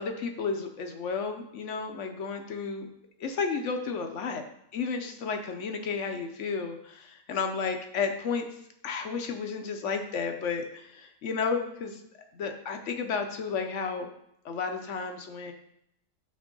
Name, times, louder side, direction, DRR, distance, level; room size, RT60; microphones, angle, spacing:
voice 1, 0.0-2.9 3.2-4.4 4.7-8.5 8.8-12.0 12.3-14.1 14.4-15.5, left 5 dB, 65° left, 5 dB, 1.1 m, -32 dB
8.6 x 3.2 x 5.3 m, 0.75 s
omnidirectional pair, 1.4 m